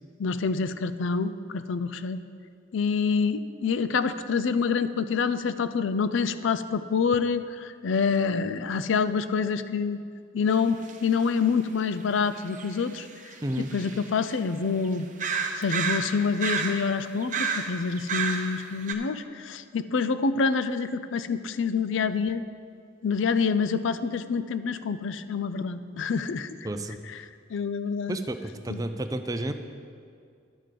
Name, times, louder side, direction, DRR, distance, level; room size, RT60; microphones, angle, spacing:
voice 1, 0.2-2.2 2.7-10.0 10.3-13.1 13.7-15.1 15.5-22.4 23.0-26.6 27.1-27.2 27.5-28.2 28.7-28.8, left 5 dB, 70° left, 12 dB, 0.4 m, -27 dB
sound 1, 10.5-10.6 10.9-11.0 12.5-14.3 14.8-14.9 15.2-16.9 17.2-18.6 18.9-19.0, right 5 dB, 40° right, 0.8 m, -30 dB
voice 2, 26.6-27.0 28.1-29.5, right 1 dB, 20° right, 7 dB, 0.5 m, -31 dB
11.0 x 5.1 x 7.5 m, 2.3 s
head